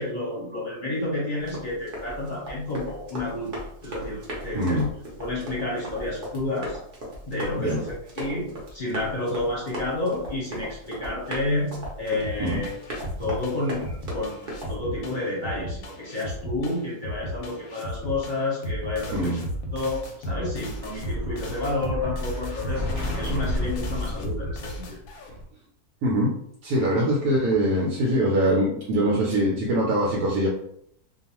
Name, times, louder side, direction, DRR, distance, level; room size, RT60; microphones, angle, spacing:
voice 1, 0.0-3.5 3.8-4.8 5.2-6.8 7.3-11.7 12.0-12.7 13.2-19.3 19.7-22.9 23.2-25.0 26.9-27.0, left 2 dB, 40° left, -6 dB, 0.8 m, -30 dB
Run, 1.4-14.7, equal, 45° right, 0.8 m, -37 dB
voice 2, 4.5-4.9 7.6-7.8 12.4-12.6 19.1-19.4 26.0-26.4 26.6-30.5, right 1 dB, 75° right, -3 dB, 1.1 m, -23 dB
sound 1, 12.2-25.4, equal, 70° left, 0.9 m, -35 dB
Explosion, 20.4-25.0, left 1 dB, 20° right, 0.9 m, -32 dB
2.5 x 2.3 x 2.9 m, 0.71 s
omnidirectional pair, 1.7 m